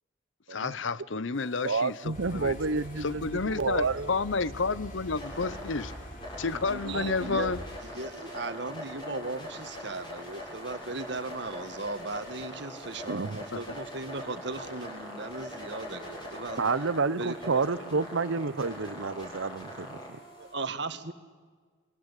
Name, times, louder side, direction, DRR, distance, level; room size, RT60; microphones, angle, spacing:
voice 1, 0.5-2.6 3.0-5.9 6.4-7.6 13.5-13.6, left 4 dB, 70° left, 18 dB, 0.8 m, -30 dB
sound 1, 1.3-20.5, equal, 25° left, 7.2 m, -43 dB
voice 2, 1.6-4.1 7.2-7.4 13.1-13.4 16.6-20.2, right 4 dB, 80° right, 17 dB, 0.8 m, -30 dB
sound 2, 2.1-7.8, equal, 40° left, 3.5 m, -44 dB
voice 3, 6.7-7.5 7.8-16.6 17.2-18.0 20.3-21.1, right 3 dB, 60° right, 10 dB, 1.7 m, -37 dB
28.5 x 24.0 x 8.3 m, 1.5 s
head